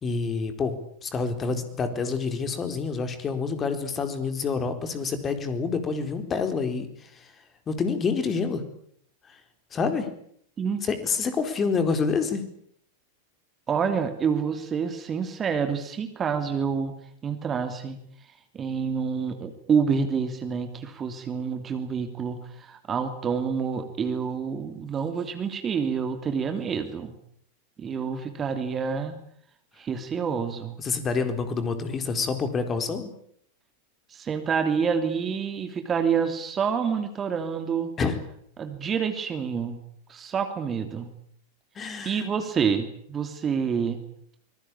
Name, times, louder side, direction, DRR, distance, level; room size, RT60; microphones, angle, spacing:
voice 1, 0.0-7.3 7.7-8.6 9.3-9.4 9.7-10.1 10.8-12.4 30.8-33.1 38.0-38.2 41.8-42.2, left 5 dB, 25° left, 9 dB, 4.3 m, -27 dB
voice 2, 13.7-16.9 17.2-18.0 18.5-27.1 27.8-29.2 29.8-30.7 34.1-37.9 38.6-39.8 40.1-41.1 42.0-44.0, right 6 dB, 25° right, 8 dB, 2.9 m, -28 dB
25.0 x 22.0 x 8.7 m, 0.68 s
figure-of-eight pair, 90°, 0 cm